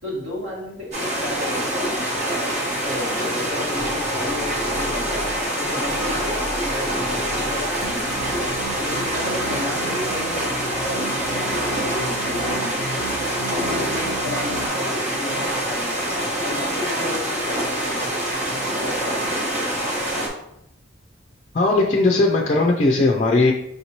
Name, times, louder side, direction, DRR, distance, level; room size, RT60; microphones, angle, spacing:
voice 1, 0.0-2.4 2.8-8.4 8.8-13.0 13.4-16.1 16.4-18.1 18.7-19.3, left 2 dB, 60° right, -5 dB, 1.5 m, -33 dB
sound 1, 0.9-20.3, right 1 dB, 35° right, 1.0 m, -25 dB
sound 2, 3.8-10.2, left 1 dB, 15° right, 0.8 m, -36 dB
sound 3, 7.8-14.7, right 4 dB, 85° right, 0.4 m, -36 dB
voice 2, 21.5-23.5, left 2 dB, 35° left, 0 dB, 0.4 m, -18 dB
5.2 x 2.8 x 2.9 m, 0.79 s
head